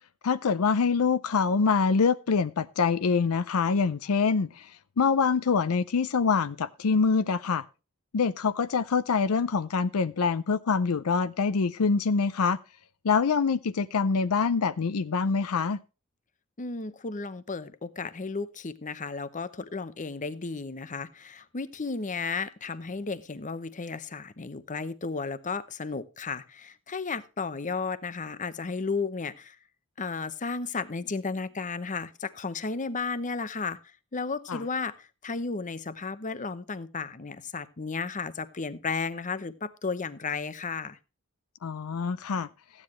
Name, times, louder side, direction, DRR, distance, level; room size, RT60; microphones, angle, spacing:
voice 1, 0.2-4.7 5.0-7.6 8.1-12.6 13.0-15.8 34.5-34.6 41.6-42.5, left 5 dB, 75° left, 0.5 m, -25 dB
voice 2, 16.6-29.6 30.0-33.8 34.1-41.0, left 4 dB, 35° left, 0.8 m, -34 dB
14.5 x 9.7 x 3.1 m
head